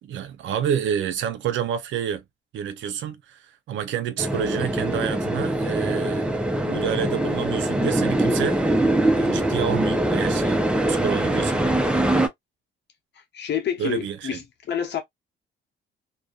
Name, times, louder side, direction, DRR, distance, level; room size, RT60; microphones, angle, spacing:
voice 1, 0.0-2.2 2.5-6.3 6.6-8.8 9.1-10.6 10.9-11.6 13.8-14.4, right 9 dB, 70° right, 0.6 m, -29 dB
sound 1, 4.2-12.3, right 1 dB, 5° right, 0.5 m, -23 dB
voice 2, 13.3-14.4 14.7-15.0, left 8 dB, 60° left, 0.9 m, -27 dB
2.6 x 2.2 x 2.2 m
cardioid pair, 90°, 20 cm